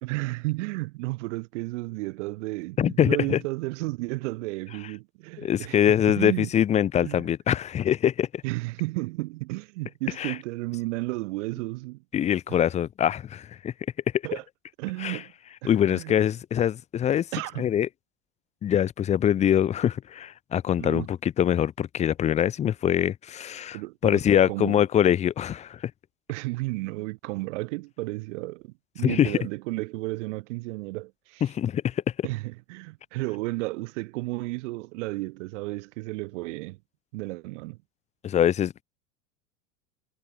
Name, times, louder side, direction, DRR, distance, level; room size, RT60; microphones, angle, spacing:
voice 1, 0.0-5.8 6.1-6.5 7.0-7.2 8.4-12.0 12.5-12.6 14.2-14.4 14.8-15.3 15.6-16.2 17.3-17.7 20.8-21.1 23.7-24.8 26.3-31.4 32.2-36.8 37.1-37.8, right 22 dB, 65° right, 0.8 m, -33 dB
voice 2, 2.8-3.4 5.4-8.4 10.2-10.3 12.1-13.7 15.0-15.2 15.6-17.3 17.6-17.9 18.6-23.8 24.0-25.9 29.0-29.3 31.4-32.0 38.2-38.7, left 10 dB, 20° left, 0.4 m, -23 dB
hypercardioid pair, 90°, 39 cm